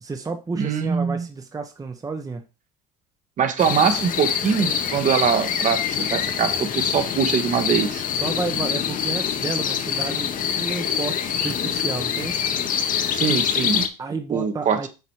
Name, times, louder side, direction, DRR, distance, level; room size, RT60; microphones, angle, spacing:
voice 1, 0.0-2.4 8.2-12.4 14.0-14.9, right 4 dB, 20° right, 5 dB, 1.0 m, -31 dB
voice 2, 0.6-1.3 3.4-8.0 13.1-13.9 14.3-14.8, right 7 dB, 45° right, 8 dB, 1.4 m, -22 dB
sound 1, 3.6-13.9, left 8 dB, 45° left, 1.2 m, -25 dB
7.9 x 4.2 x 4.7 m, 0.30 s
hypercardioid pair, 85°, 19 cm